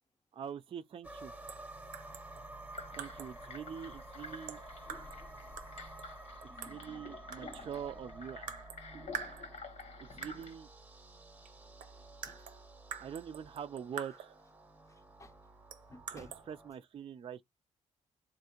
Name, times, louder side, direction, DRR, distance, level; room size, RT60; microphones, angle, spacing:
voice 1, 0.3-1.3 2.9-4.6 6.6-8.6 10.0-10.7 13.0-14.3 16.1-17.4, right 8 dB, 45° right, 0.4 m, -44 dB
sound 1, 1.0-16.7, right 1 dB, 10° right, 0.8 m, -51 dB
sound 2, 1.5-1.7 1.9-3.4 4.5-5.3 5.6-7.0 7.3-7.9 8.5-8.8 9.1-9.8 10.2-10.6 11.5-11.6 11.8-14.5 15.7-16.4, right 8 dB, 90° right, 0.6 m, -46 dB
sound 3, 2.7-10.5, left 3 dB, 60° left, 1.1 m, -50 dB
voice 2, 14.9-15.4 15.9-16.4, left 2 dB, 25° left, 0.6 m, -56 dB
3.5 x 2.5 x 2.8 m
cardioid pair, 80°, 13 cm